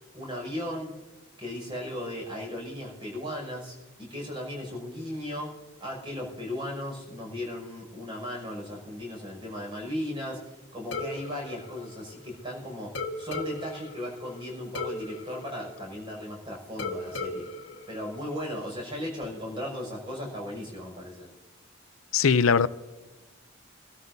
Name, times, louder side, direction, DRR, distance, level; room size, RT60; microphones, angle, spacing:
voice 1, 0.1-0.9 1.4-5.5 5.8-17.5 17.9-21.3, left 1 dB, 25° right, 6.1 m, -36 dB
sound 1, 10.9-12.5 13.0-16.3 16.8-18.8, left 2 dB, 65° left, 1.4 m, -37 dB
voice 2, 22.1-22.7, left 6 dB, 90° left, 0.5 m, -20 dB
26.0 x 13.0 x 2.7 m
head